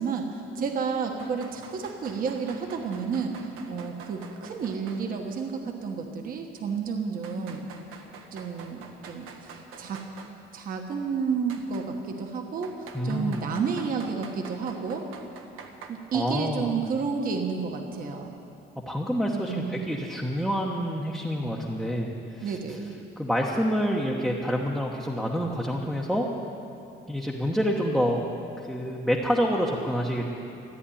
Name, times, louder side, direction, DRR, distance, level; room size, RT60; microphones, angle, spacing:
voice 1, 0.0-3.4 3.7-7.7 8.3-10.0 10.5-15.1 15.9-18.4 19.3-19.9 22.4-22.9, right 5 dB, 45° right, 3 dB, 1.3 m, -31 dB
sound 1, 1.2-5.1 5.4-5.5 6.3-6.4 7.2-10.3 11.5-11.9 12.6-15.9, right 6 dB, 90° right, 1.5 m, -46 dB
voice 2, 12.9-13.4 16.1-16.7 18.9-22.5 23.2-26.3 27.1-28.2 28.7-30.2, equal, ahead, -3 dB, 0.9 m, -27 dB
14.0 x 9.8 x 9.9 m, 2.6 s
cardioid pair, 165°, 21 cm